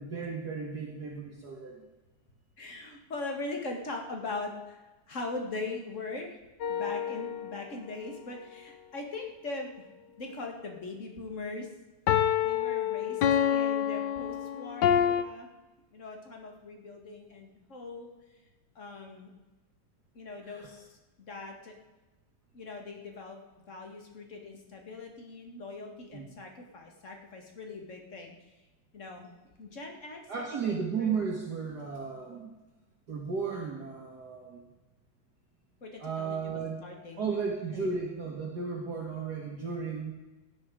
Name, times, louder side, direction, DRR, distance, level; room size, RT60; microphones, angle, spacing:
voice 1, 0.0-1.9 20.4-20.7 26.1-26.3 30.3-32.5 33.1-34.6 36.0-36.8 37.2-40.1, right 5 dB, 55° right, -1 dB, 2.1 m, -34 dB
voice 2, 2.6-4.8 5.1-6.4 6.7-9.7 10.2-11.7 12.4-15.5 15.9-18.1 18.8-19.3 20.1-20.9 21.2-21.7 22.5-23.4 23.7-28.4 28.9-29.3 29.6-31.2 35.8-37.3 37.7-37.9, left 3 dB, 35° left, 2 dB, 2.3 m, -41 dB
sound 1, 6.6-7.6 12.1-15.2, left 9 dB, 65° left, 1.3 m, -27 dB
16.5 x 10.5 x 4.9 m, 1.1 s
omnidirectional pair, 2.2 m